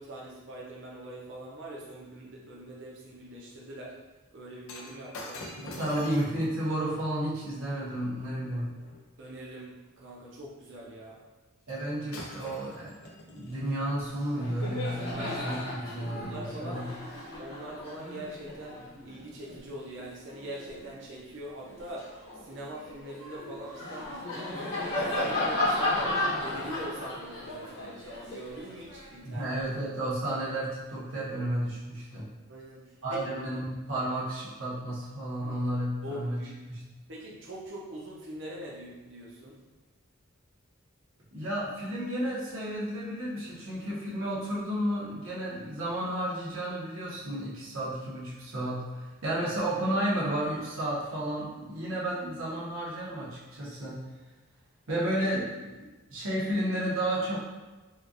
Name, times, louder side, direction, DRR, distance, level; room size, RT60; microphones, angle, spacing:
voice 1, 0.0-4.0 4.3-5.8 9.2-11.2 15.1-15.6 16.2-16.9 17.4-22.2 22.4-24.3 24.9-29.4 32.5-33.2 36.0-36.5 37.1-39.6, right 1 dB, 55° right, -4 dB, 0.8 m, -43 dB
Shatter, 4.6-9.0 11.7-11.8 12.1-13.6 14.4-14.5, left 2 dB, 75° left, 0.5 m, -46 dB
voice 2, 5.6-8.7 11.7-12.9 13.2-16.8 29.2-32.3 33.0-36.4 36.7-36.8 41.3-54.0 54.9-57.4, right 1 dB, 75° right, -8 dB, 1.2 m, -32 dB
Laughter, 13.9-14.0 14.3-21.0 21.5-29.7, left 1 dB, 60° left, 1.4 m, -35 dB
4.4 x 2.5 x 2.5 m, 1.2 s
head